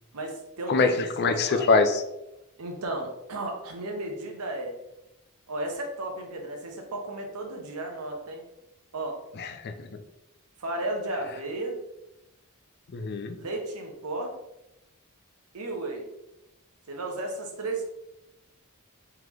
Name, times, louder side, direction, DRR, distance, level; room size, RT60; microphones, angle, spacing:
voice 1, 0.1-0.9 1.2-1.7 2.6-4.8 5.5-8.4 8.9-9.2 10.6-11.8 13.4-14.4 15.5-16.1 16.9-17.9, right 2 dB, 80° right, 2 dB, 0.8 m, -34 dB
voice 2, 0.7-2.0 9.4-10.0 12.9-13.4, left 4 dB, 50° left, 7 dB, 0.4 m, -24 dB
3.7 x 3.3 x 3.0 m, 0.90 s
head